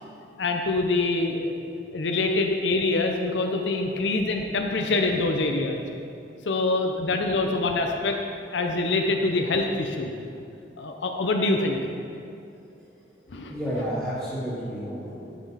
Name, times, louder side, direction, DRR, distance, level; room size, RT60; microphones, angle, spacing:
voice 1, 0.4-1.6 1.9-5.8 6.5-8.2 8.5-10.1 10.8-11.8 13.3-13.5, left 2 dB, 75° left, 3 dB, 0.6 m, -25 dB
voice 2, 3.4-3.9 6.8-6.9 9.1-9.7 12.7-12.8 13.5-15.4, equal, 10° right, -14 dB, 2.0 m, -33 dB
11.0 x 6.1 x 4.2 m, 2.5 s
head